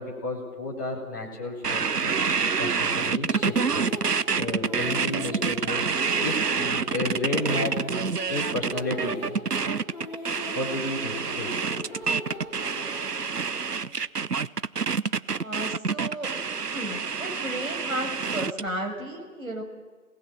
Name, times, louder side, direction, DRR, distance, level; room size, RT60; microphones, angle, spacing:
voice 1, 0.0-2.1 2.6-3.9 4.3-7.8 8.3-9.2 10.5-11.5, left 2 dB, 15° left, -6 dB, 2.5 m, -32 dB
sound 1, 1.6-18.7, right 5 dB, 90° right, 0.8 m, -27 dB
sound 2, 3.3-13.9, left 1 dB, 30° left, 4.8 m, -40 dB
voice 2, 15.3-16.3 16.6-19.6, right 1 dB, 60° right, 1 dB, 5.9 m, -34 dB
27.5 x 19.0 x 7.6 m, 1.5 s
figure-of-eight pair, 170°, 46 cm